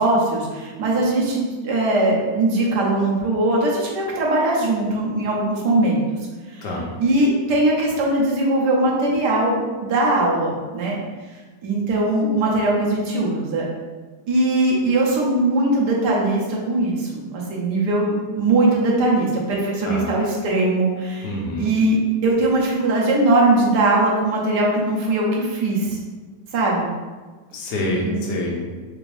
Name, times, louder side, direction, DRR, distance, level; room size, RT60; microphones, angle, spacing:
voice 1, 0.0-6.0 6.5-6.7 7.0-11.0 11.6-13.7 14.3-21.3 21.6-26.0 26.5-26.9 28.0-28.2, right 2 dB, 80° right, -2 dB, 1.4 m, -20 dB
voice 2, 21.2-21.7 27.5-28.6, left 1 dB, 90° left, -2 dB, 1.4 m, -26 dB
3.9 x 3.2 x 2.6 m, 1.4 s
omnidirectional pair, 1.8 m